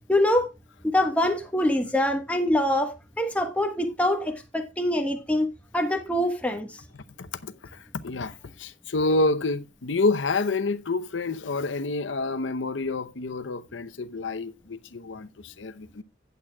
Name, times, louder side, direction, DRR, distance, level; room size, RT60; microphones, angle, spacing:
voice 1, 0.1-0.5 0.9-6.7, left 1 dB, 5° left, 1.3 m, -24 dB
voice 2, 6.9-16.0, left 3 dB, 85° left, 0.8 m, -28 dB
16.0 x 8.1 x 2.3 m
head